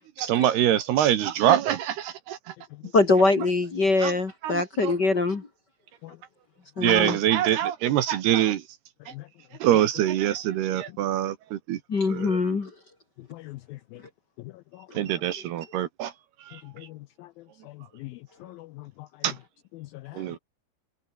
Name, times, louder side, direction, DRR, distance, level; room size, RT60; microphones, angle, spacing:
voice 1, 0.2-2.5 4.0-4.1 4.4-4.9 6.8-8.6 9.1-9.2 9.6-11.8 12.1-12.4 14.9-16.1 16.4-16.6 19.2-19.4 20.1-20.4, right 11 dB, 75° right, 3.3 m, -24 dB
voice 2, 2.9-5.5 6.8-7.2 11.9-12.7, left 3 dB, 35° left, 1.9 m, -23 dB
voice 3, 13.3-13.8 16.8-17.3 18.0-18.7 19.8-20.4, left 18 dB, 85° left, 2.1 m, -42 dB
omnidirectional pair, 4.9 m